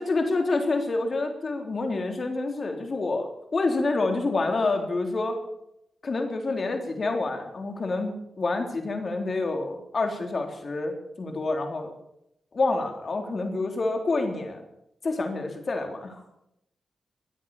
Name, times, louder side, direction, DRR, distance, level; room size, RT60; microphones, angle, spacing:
voice 1, 0.0-5.4 6.0-11.9 12.5-14.6 15.0-16.2, left 3 dB, 50° left, 4 dB, 3.6 m, -28 dB
22.5 x 8.5 x 7.2 m, 0.80 s
cardioid pair, 75°, 0 cm